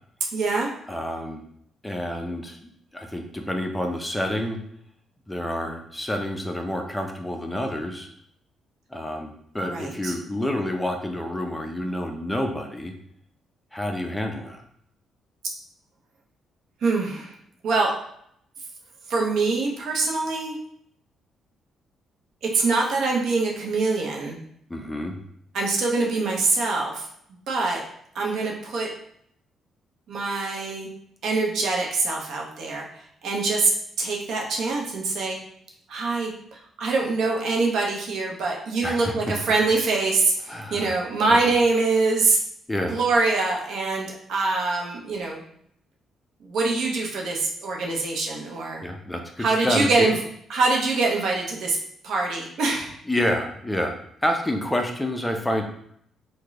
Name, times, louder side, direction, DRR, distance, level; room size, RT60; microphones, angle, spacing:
voice 1, 0.3-0.7 9.6-10.1 16.8-17.3 17.6-17.9 19.1-20.6 22.4-24.4 25.5-27.1 27.5-27.8 28.1-28.9 30.1-30.9 31.2-32.9 33.2-33.7 34.0-35.4 35.9-42.4 42.9-45.4 46.4-48.9 49.4-50.1 50.5-51.8 52.0-52.9, right 3 dB, 75° right, -1 dB, 0.7 m, -24 dB
voice 2, 0.9-1.4 1.8-4.6 5.3-8.1 8.9-12.9 13.7-14.6 24.7-25.2 38.8-39.3 40.5-40.9 41.3-41.4 42.7-43.0 48.8-50.1 53.1-54.0 54.2-55.6, left 1 dB, 10° left, 3 dB, 0.5 m, -28 dB
3.1 x 2.2 x 3.6 m, 0.69 s
cardioid pair, 90°, 0 cm